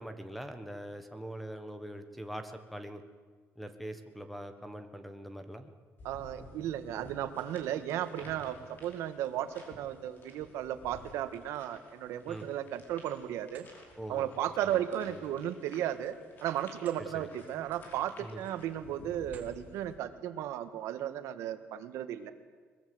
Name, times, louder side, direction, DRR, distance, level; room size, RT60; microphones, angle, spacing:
voice 1, 0.0-3.0 3.6-5.7 12.3-12.5 14.0-14.3 15.1-15.2 17.0-17.3 18.2-18.4, right 1 dB, ahead, 8 dB, 1.3 m, -43 dB
sound 1, 6.0-19.9, left 1 dB, 40° left, 5.1 m, -54 dB
voice 2, 6.0-13.7 14.1-16.2 16.4-22.3, right 11 dB, 85° right, 10 dB, 1.6 m, -35 dB
sound 2, 12.4-13.0 13.4-13.7 15.9-17.1 17.5-17.7 18.3-18.7 19.2-19.6, right 6 dB, 35° right, 2.7 m, -58 dB
22.5 x 21.0 x 7.9 m, 1.5 s
cardioid pair, 160°, 5 cm